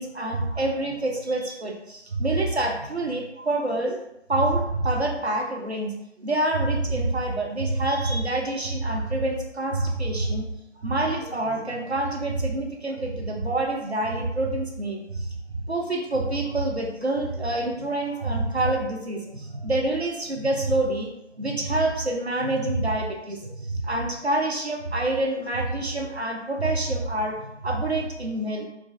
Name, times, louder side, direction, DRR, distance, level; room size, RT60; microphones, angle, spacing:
voice 1, 0.0-4.0 4.3-5.9 6.2-10.5 10.8-21.1 21.4-27.4 27.6-28.7, right 2 dB, 60° right, 1 dB, 0.5 m, -26 dB
3.0 x 2.4 x 2.3 m, 0.86 s
figure-of-eight pair, 175°, 36 cm